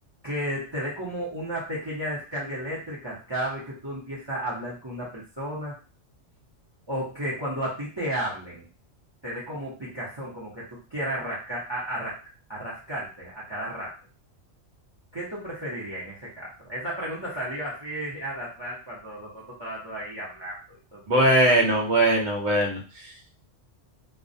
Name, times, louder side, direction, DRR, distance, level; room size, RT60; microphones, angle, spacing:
voice 1, 0.2-5.8 6.9-8.7 9.2-12.2 12.5-13.9 15.1-20.6 20.9-21.3, equal, 25° right, -6 dB, 0.7 m, -33 dB
voice 2, 21.1-22.8, right 1 dB, 70° right, 0 dB, 1.0 m, -20 dB
2.2 x 2.1 x 2.6 m, 0.35 s
omnidirectional pair, 1.2 m